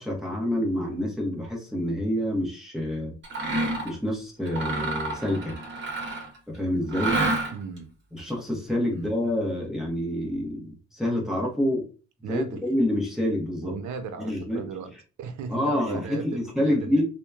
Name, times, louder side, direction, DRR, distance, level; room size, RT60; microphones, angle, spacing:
voice 1, 0.0-3.1 3.8-5.6 6.5-7.2 8.1-11.9 12.3-13.7 14.2-14.7 15.5-17.0, left 1 dB, ahead, 0.9 m, -27 dB
Mechanisms, 3.2-4.0 4.5-6.4 6.9-7.8, right 2 dB, 40° right, 1.0 m, -28 dB
voice 2, 7.5-7.9 8.9-9.1 12.2-12.7 13.6-14.9 15.2-17.0, right 6 dB, 70° right, 0.6 m, -36 dB
2.8 x 2.1 x 2.3 m
cardioid pair, 90°, 30 cm